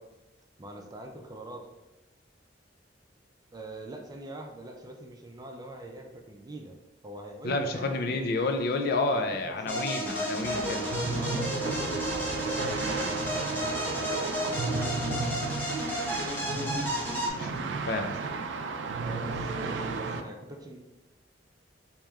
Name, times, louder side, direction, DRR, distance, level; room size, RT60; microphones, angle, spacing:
voice 1, 0.6-1.7 3.5-6.8 7.0-8.3 9.1-9.8 11.1-13.1 13.6-15.2 19.0-20.8, right 1 dB, 20° right, 2 dB, 0.5 m, -43 dB
voice 2, 7.4-10.9 17.4-17.6 17.9-18.2, left 2 dB, 60° left, 6 dB, 0.4 m, -29 dB
sound 1, 9.7-17.3, equal, 10° left, 0.8 m, -32 dB
sound 2, 10.4-20.2, right 4 dB, 80° right, 0.4 m, -34 dB
3.3 x 2.9 x 3.5 m, 0.97 s
head